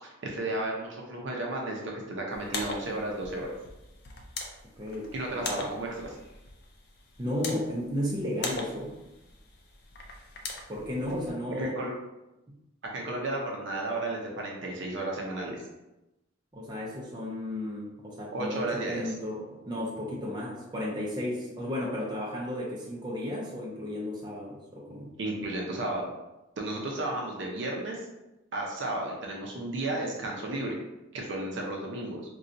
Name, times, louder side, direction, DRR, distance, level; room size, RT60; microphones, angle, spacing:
voice 1, 0.0-3.5 5.1-5.9 11.6-11.9 12.9-15.6 18.3-19.1 25.2-26.1 26.6-28.0 28.5-30.8 31.1-32.2, right 2 dB, 60° right, -1 dB, 0.6 m, -33 dB
sound 1, 2.3-11.3, left 3 dB, 50° left, 0.5 m, -41 dB
voice 2, 4.8-5.7 7.2-9.0 10.7-11.8 12.5-12.6 16.5-25.1, left 1 dB, 20° right, -4 dB, 0.6 m, -34 dB
4.0 x 2.3 x 2.5 m, 0.96 s
head